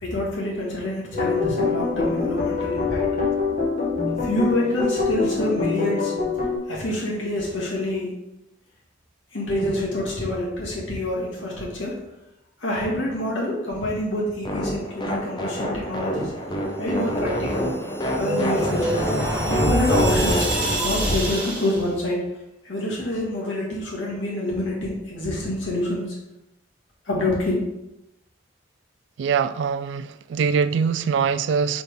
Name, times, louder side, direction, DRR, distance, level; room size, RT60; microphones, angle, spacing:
voice 1, 0.0-3.0 4.2-6.1 6.7-8.1 9.3-12.0 12.6-16.3 16.8-17.7 18.2-19.0 19.5-20.5 20.8-22.2 22.6-26.2 27.1-27.6, left 1 dB, 90° left, -4 dB, 2.1 m, -26 dB
sound 1, 1.1-6.6, left 4 dB, 40° left, 1.5 m, -24 dB
sound 2, 14.4-21.9, equal, 25° left, 0.6 m, -27 dB
sound 3, 17.3-21.8, right 1 dB, 10° right, 1.5 m, -26 dB
voice 2, 29.2-31.8, right 6 dB, 75° right, 13 dB, 0.3 m, -23 dB
4.4 x 4.0 x 5.3 m, 0.92 s
head